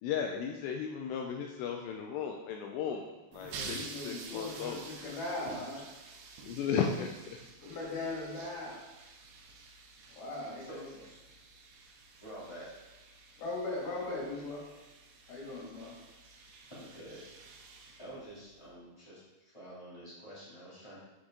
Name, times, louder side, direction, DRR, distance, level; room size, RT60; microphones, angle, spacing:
voice 1, 0.0-5.2 6.4-7.4, left 7 dB, 85° left, 2 dB, 2.5 m, -35 dB
sound 1, 3.3-18.7, right 4 dB, 80° right, 3.1 m, -50 dB
voice 2, 3.4-5.8 7.6-8.8 10.1-10.8 13.4-14.6 15.3-15.9, left 2 dB, 55° left, -5 dB, 3.7 m, -39 dB
voice 3, 10.7-11.2 12.2-12.7 16.7-17.2 18.0-21.0, right 1 dB, 15° left, -10 dB, 0.9 m, -48 dB
7.7 x 6.2 x 3.8 m, 1.1 s
omnidirectional pair, 5.5 m